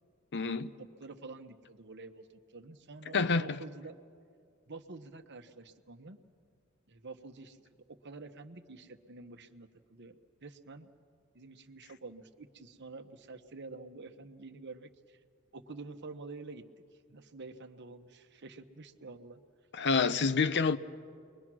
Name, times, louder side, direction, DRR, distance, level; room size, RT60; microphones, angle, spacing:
voice 1, 0.3-0.7 3.1-3.6 19.7-20.8, left 4 dB, 55° left, 0.7 m, -28 dB
voice 2, 1.0-2.3 2.5-3.9 4.7-6.2 6.9-7.6 8.0-10.9 11.3-15.2 15.5-16.6 17.1-19.4, right 3 dB, 55° right, 1.1 m, -48 dB
29.5 x 22.0 x 6.2 m
head